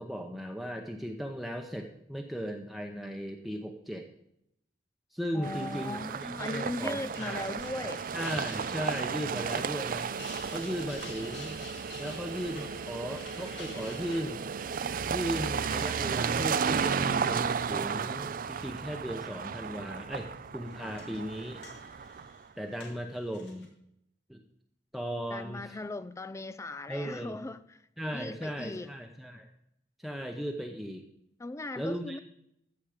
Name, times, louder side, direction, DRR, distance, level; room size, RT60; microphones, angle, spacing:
voice 1, 0.0-4.1 5.1-7.5 8.1-10.1 10.5-11.6 12.0-14.4 15.1-21.6 22.6-23.7 24.3-24.4 24.9-25.8 26.9-27.3 28.0-29.5 30.0-31.0 31.8-32.2, equal, ahead, 0.8 m, -37 dB
voice 2, 5.3-8.1 25.3-27.8 28.1-28.9 31.4-32.2, left 2 dB, 15° left, 0.4 m, -38 dB
sound 1, 5.4-22.4, right 6 dB, 50° right, 0.5 m, -34 dB
sound 2, 7.0-18.6 19.0-19.6 20.5-23.7, left 3 dB, 75° left, 2.6 m, -51 dB
14.5 x 7.3 x 5.0 m
head